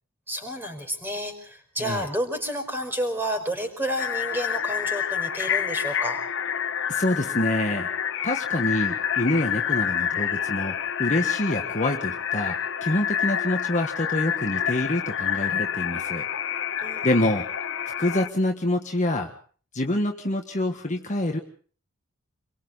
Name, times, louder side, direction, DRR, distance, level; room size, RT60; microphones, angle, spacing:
voice 1, 0.3-6.2 16.8-17.4, equal, 10° right, 6 dB, 5.1 m, -30 dB
sound 1, 4.0-18.3, left 9 dB, 60° left, 1.3 m, -28 dB
voice 2, 6.9-7.9 8.2-16.3 17.0-17.5 18.0-19.3 19.7-21.4, left 1 dB, 35° left, 3 dB, 1.6 m, -26 dB
28.5 x 23.0 x 4.0 m, 0.43 s
head